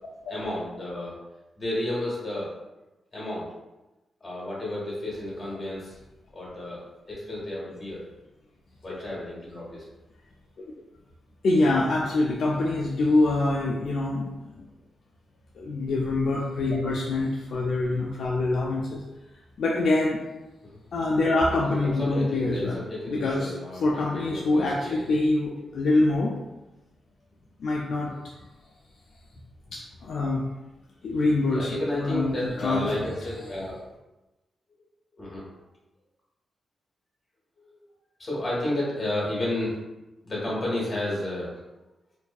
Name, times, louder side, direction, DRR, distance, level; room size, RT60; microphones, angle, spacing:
voice 1, 0.3-1.2 1.6-2.6 3.1-3.5 4.2-6.0 6.3-6.8 7.1-8.1 8.8-9.8 20.6-20.8 21.6-25.1 31.5-33.8 35.1-35.5 37.6-37.8 38.2-39.8 40.3-41.6, left 1 dB, 30° left, -6 dB, 1.1 m, -32 dB
voice 2, 11.4-14.7 15.6-19.0 19.6-20.2 20.9-23.5 23.8-26.3 27.6-28.1 29.7-30.5 31.0-33.1, left 2 dB, 65° left, -3 dB, 0.3 m, -25 dB
2.6 x 2.4 x 2.3 m, 1.0 s
wide cardioid pair, 145°, 0 cm